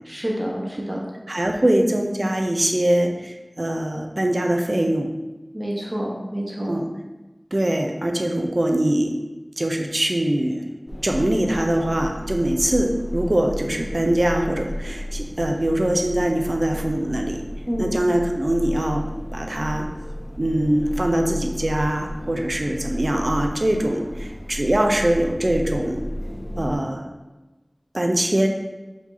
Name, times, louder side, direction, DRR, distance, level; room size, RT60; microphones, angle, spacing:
voice 1, 0.1-1.1 5.5-6.8 17.7-17.9, equal, 25° right, -3 dB, 1.1 m, -28 dB
voice 2, 1.3-5.1 6.7-6.9 7.5-9.2 9.6-10.7 11.0-17.4 17.8-19.1 19.3-19.9 20.4-26.0 26.6-27.1 27.9-28.5, right 1 dB, 55° right, 3 dB, 0.5 m, -22 dB
sound 1, 10.9-26.8, equal, 15° left, 0.7 m, -33 dB
4.8 x 2.8 x 3.9 m, 1.1 s
wide cardioid pair, 45°, 0 cm